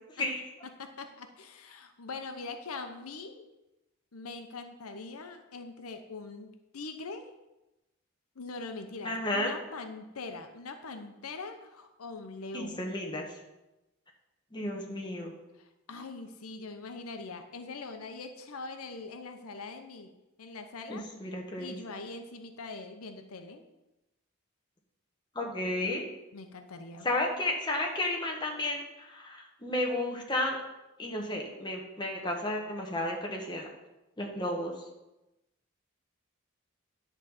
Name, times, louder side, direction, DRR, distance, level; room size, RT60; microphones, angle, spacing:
voice 1, 0.8-3.4 4.1-7.3 8.4-12.9 15.9-20.1 20.4-21.1 21.6-23.6 26.3-27.1, left 3 dB, 90° left, 7 dB, 0.8 m, -42 dB
voice 2, 9.0-9.5 12.5-13.3 14.5-15.3 20.9-21.7 25.3-26.1 27.0-30.6 31.0-33.7 34.2-34.7, left 1 dB, 20° left, 0 dB, 1.4 m, -32 dB
10.5 x 4.0 x 7.2 m, 0.98 s
head